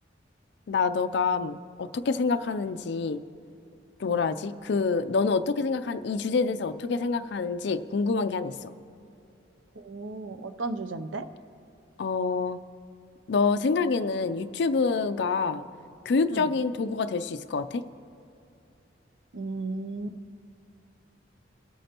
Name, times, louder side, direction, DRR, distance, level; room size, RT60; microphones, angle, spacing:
voice 1, 0.7-3.2 4.0-8.7 12.0-12.6 13.3-15.6 16.1-17.8, left 4 dB, 60° left, 10 dB, 0.4 m, -27 dB
voice 2, 9.8-11.3 16.3-16.5 19.3-20.2, right 3 dB, 85° right, 11 dB, 0.6 m, -35 dB
24.0 x 8.4 x 2.9 m, 2.6 s
head